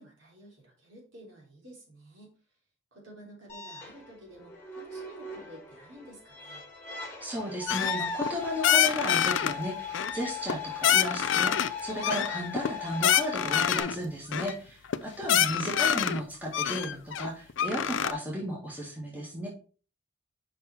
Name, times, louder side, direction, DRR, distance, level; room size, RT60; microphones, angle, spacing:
voice 1, 0.0-2.3 2.9-6.6, right 1 dB, 65° right, -2 dB, 3.2 m, -51 dB
sound 1, 3.5-13.8, left 5 dB, 10° left, 1.8 m, -39 dB
voice 2, 7.2-19.5, equal, 10° right, -5 dB, 1.9 m, -34 dB
sound 2, 7.7-8.3 8.6-9.5 9.9-10.6 10.8-11.7 12.0-14.0 14.3-14.5 14.9-15.0 15.2-16.2 16.5-18.1, left 9 dB, 65° left, 0.4 m, -26 dB
5.6 x 5.5 x 4.3 m, 0.37 s
head